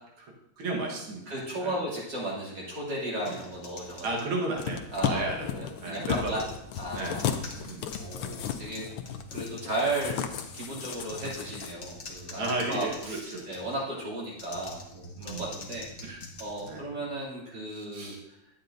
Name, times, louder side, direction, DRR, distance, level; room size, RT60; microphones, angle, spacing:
voice 1, 0.2-1.2 1.6-1.8 4.0-6.4 6.9-7.2 7.6-7.9 12.4-13.4 15.2-15.5 16.0-16.2 16.7-16.8 17.7-18.2, right 2 dB, 75° right, -1 dB, 2.3 m, -34 dB
voice 2, 1.3-4.1 4.9-5.2 5.6-6.4 6.8-8.9 9.3-10.2 10.5-15.9 16.4-18.1, right 1 dB, 55° right, -5 dB, 3.3 m, -35 dB
sound 1, 3.2-5.3 5.9-13.8 14.3-17.2, left 2 dB, 40° left, 0.9 m, -46 dB
sound 2, 4.6-11.7 12.1-12.2, left 9 dB, 80° left, 1.5 m, -34 dB
11.0 x 8.6 x 2.6 m, 0.80 s
omnidirectional pair, 2.4 m